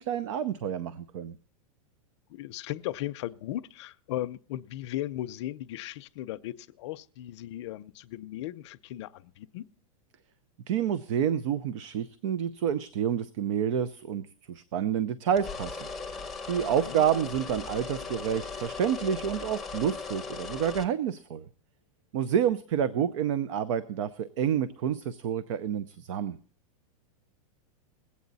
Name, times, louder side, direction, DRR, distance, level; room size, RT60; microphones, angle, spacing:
voice 1, 0.0-1.4 10.7-15.9 16.4-21.5 22.1-26.4, right 8 dB, 60° right, 0.6 m, -29 dB
voice 2, 2.3-9.7 16.6-17.0, left 14 dB, 55° left, 0.6 m, -37 dB
sound 1, 15.4-20.9, left 4 dB, ahead, 0.9 m, -38 dB
21.0 x 8.4 x 4.0 m
supercardioid pair, 160°, 18 cm